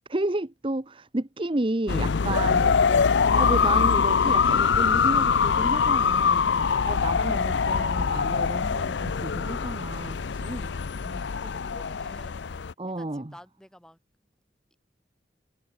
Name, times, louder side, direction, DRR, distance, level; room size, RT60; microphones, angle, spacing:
voice 1, 0.1-3.0 3.3-10.7 11.0-11.2 12.8-13.3, right 2 dB, 25° right, 0.9 m, -32 dB
sound 1, 1.9-12.7, left 6 dB, 70° left, 0.5 m, -23 dB
voice 2, 11.0-12.6 13.0-14.0, equal, 5° left, 6.9 m, -52 dB
head